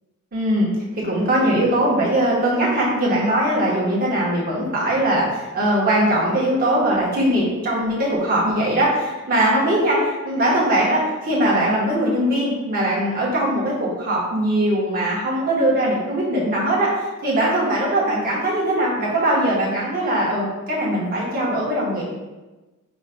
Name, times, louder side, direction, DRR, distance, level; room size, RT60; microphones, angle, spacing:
voice 1, 0.3-0.7 0.9-16.9 17.2-22.0, right 1 dB, 40° right, -5 dB, 1.1 m, -20 dB
4.9 x 3.1 x 2.2 m, 1.1 s
head